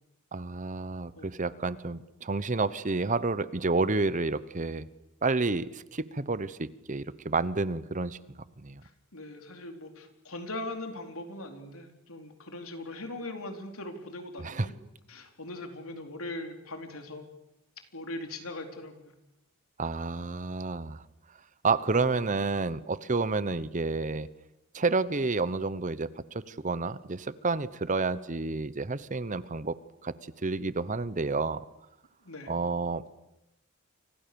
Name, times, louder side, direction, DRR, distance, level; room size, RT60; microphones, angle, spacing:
voice 1, 0.3-4.9 5.2-8.2 8.6-8.8 14.4-14.7 19.8-21.0 21.6-24.3 24.7-29.8 30.0-30.1 30.4-31.6 32.5-33.1, right 3 dB, 35° right, 16 dB, 0.9 m, -30 dB
voice 2, 8.8-14.8 15.1-17.3 17.9-19.1 32.2-32.6, left 2 dB, 70° left, 5 dB, 4.1 m, -40 dB
30.0 x 25.0 x 7.0 m, 0.88 s
head